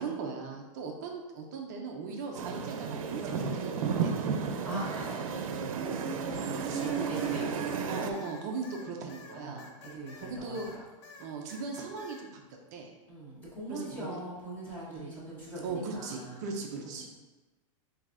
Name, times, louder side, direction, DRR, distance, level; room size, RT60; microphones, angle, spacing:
voice 1, 0.0-3.7 4.0-4.2 5.8-6.1 6.6-6.9 7.9-9.6 10.2-10.7 11.2-12.4 12.7-12.9 13.7-14.2 14.9-15.1 15.6-17.1, right 4 dB, 30° right, 1 dB, 0.4 m, -38 dB
sound 1, 2.3-8.1, right 6 dB, 85° right, 0.5 m, -33 dB
voice 2, 4.6-5.3 6.2-7.6 9.3-10.8 13.1-17.1, right 1 dB, 10° left, -8 dB, 1.0 m, -41 dB
sound 2, 6.7-10.8 11.0-12.2, left 4 dB, 55° left, 0.6 m, -51 dB
7.1 x 2.7 x 2.5 m, 1.2 s
supercardioid pair, 180°, 17 cm